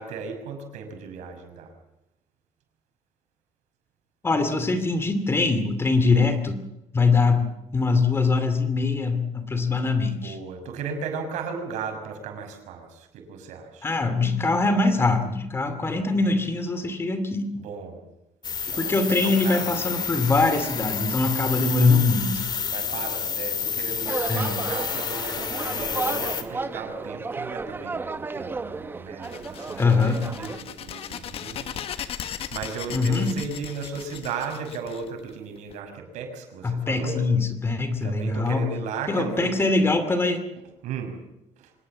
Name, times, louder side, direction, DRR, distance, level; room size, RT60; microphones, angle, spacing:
voice 1, 0.0-1.7 10.1-13.9 17.5-18.0 18.7-20.0 22.7-31.7 32.1-37.3 38.0-39.8 40.6-41.2 41.6-41.7, right 5 dB, 80° right, 5 dB, 6.1 m, -36 dB
voice 2, 4.2-6.6 6.9-10.4 13.8-17.5 18.8-22.5 24.3-24.5 29.8-30.3 32.9-33.3 36.6-38.7 39.1-40.4, left 3 dB, 20° left, 10 dB, 2.6 m, -23 dB
sound 1, 18.4-26.4, left 7 dB, 35° left, 2.4 m, -30 dB
sound 2, 24.1-30.6, right 3 dB, 15° right, 0.9 m, -33 dB
sound 3, 29.2-35.7, left 9 dB, 55° left, 1.4 m, -37 dB
25.0 x 20.0 x 7.4 m, 0.91 s
cardioid pair, 145°, 12 cm